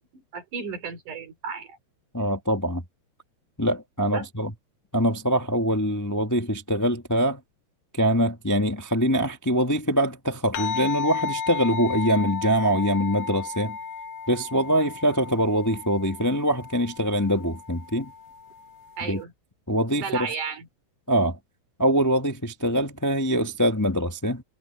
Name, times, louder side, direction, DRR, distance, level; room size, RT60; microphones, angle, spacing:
voice 1, 0.1-1.8 4.1-4.3 19.0-19.3 19.9-20.7, right 5 dB, 85° right, 5.4 m, -33 dB
voice 2, 2.1-2.8 3.6-4.5 4.9-7.4 7.9-13.8 14.3-18.1 19.0-19.2 19.7-20.3 21.1-21.4 21.8-24.4, equal, 15° left, 0.6 m, -24 dB
sound 1, 10.5-19.2, left 5 dB, 60° left, 1.9 m, -34 dB
omnidirectional pair, 3.5 m